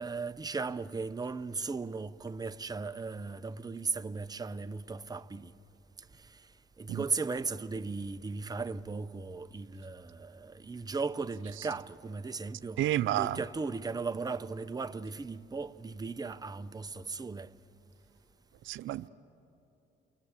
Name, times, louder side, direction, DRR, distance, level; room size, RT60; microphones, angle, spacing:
voice 1, 0.0-5.5 6.2-6.4 6.8-17.5, right 4 dB, 20° right, 0.7 m, -37 dB
voice 2, 12.8-13.4 18.6-19.1, right 13 dB, 80° right, 0.6 m, -30 dB
29.0 x 23.0 x 8.2 m
cardioid pair, 90°, 20 cm